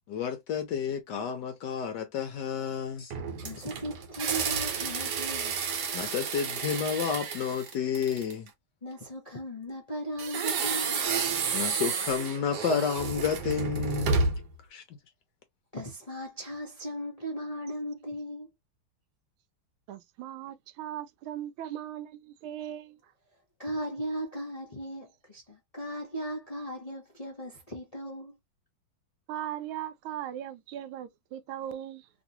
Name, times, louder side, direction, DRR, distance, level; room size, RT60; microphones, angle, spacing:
voice 1, 0.1-3.1 5.9-8.5 11.5-14.2 14.7-14.8, left 7 dB, 70° left, 1.1 m, -31 dB
sound 1, 3.1-8.5 10.2-14.5, right 5 dB, 60° right, 1.3 m, -31 dB
voice 2, 3.3-5.6 8.8-11.0 15.7-18.5 23.6-28.4, equal, 40° left, 0.5 m, -37 dB
voice 3, 19.9-23.1 29.3-32.1, right 11 dB, 80° right, 1.4 m, -38 dB
3.1 x 3.0 x 2.7 m
omnidirectional pair, 2.3 m